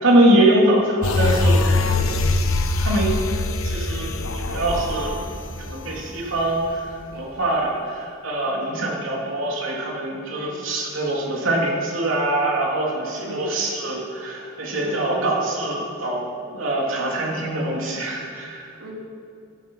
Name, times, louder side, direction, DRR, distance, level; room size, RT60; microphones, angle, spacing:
voice 1, 0.0-1.6 2.1-2.3 2.8-3.2 3.6-4.1 4.4-5.1 5.6-16.2 16.5-18.7, right 1 dB, 70° right, -2 dB, 3.3 m, -23 dB
sound 1, 1.0-6.6 7.0-7.1, left 2 dB, 80° left, 1.2 m, -23 dB
voice 2, 1.8-2.1 10.3-10.7 13.2-13.6 14.8-15.4 18.8-18.9, right 1 dB, 85° right, -3 dB, 3.6 m, -36 dB
15.5 x 11.5 x 5.7 m, 2.4 s
head